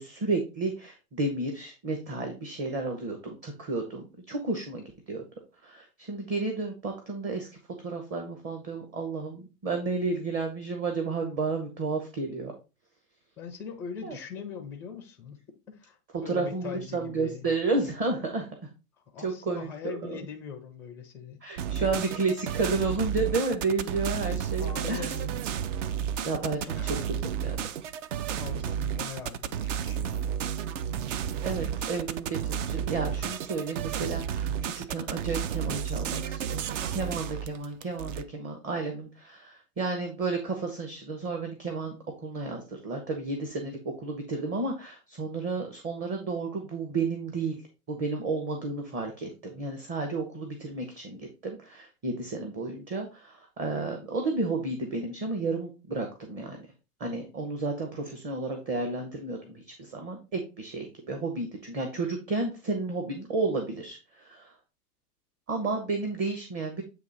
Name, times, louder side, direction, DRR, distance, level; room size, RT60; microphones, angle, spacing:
voice 1, 0.0-5.2 5.6-7.5 7.8-12.5 14.0-14.2 16.3-18.5 19.2-20.2 21.4-25.1 26.2-27.0 27.4-27.7 31.4-36.6 36.9-47.6 47.9-56.6 57.0-64.5 65.5-66.8, right 3 dB, 25° right, 1.0 m, -32 dB
voice 2, 13.4-17.5 19.1-21.4 24.6-25.3 26.7-27.1 28.3-30.3, left 7 dB, 5° left, 0.4 m, -41 dB
sound 1, 21.6-38.2, right 8 dB, 50° right, 0.6 m, -32 dB
8.4 x 2.9 x 4.0 m
hypercardioid pair, 135°, 49 cm